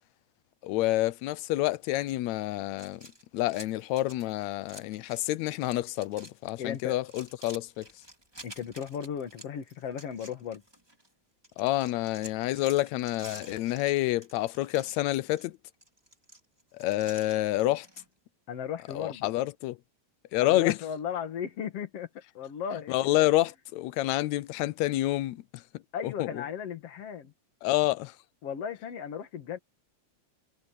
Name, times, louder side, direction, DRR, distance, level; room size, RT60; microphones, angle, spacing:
voice 1, 0.6-3.0 3.3-7.9 11.6-15.6 16.7-17.9 18.9-19.8 20.3-20.8 22.9-25.4 26.0-26.3 27.6-28.1, left 16 dB, 80° left, 1.9 m, -28 dB
sound 1, 2.7-5.3 5.6-6.3 6.6-11.1 11.4-18.1, right 1 dB, 10° right, 4.2 m, -50 dB
voice 2, 6.6-7.0 8.4-10.6 18.5-19.3 20.4-22.1 22.3-22.9 25.9-27.3 28.4-29.6, left 8 dB, 55° left, 2.6 m, -36 dB
omnidirectional pair, 3.3 m